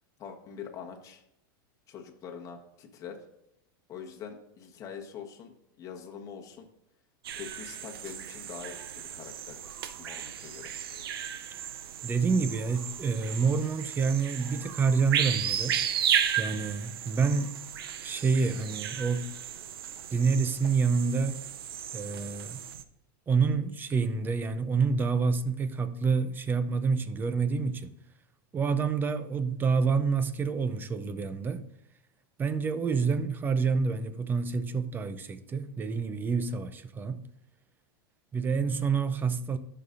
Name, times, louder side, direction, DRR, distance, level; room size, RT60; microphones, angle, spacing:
voice 1, 0.2-1.2 1.9-3.2 3.9-6.7 7.3-9.6 10.0-10.7, left 7 dB, 30° left, 1.3 m, -44 dB
sound 1, 7.2-22.8, right 9 dB, 90° right, 0.6 m, -34 dB
voice 2, 12.0-15.8 16.4-17.5 18.0-19.3 20.1-21.4 21.9-22.6 23.3-28.0 28.5-31.6 32.4-37.3 38.3-39.6, right 5 dB, 15° right, 0.5 m, -28 dB
13.0 x 5.7 x 2.6 m
supercardioid pair, 140°, 12 cm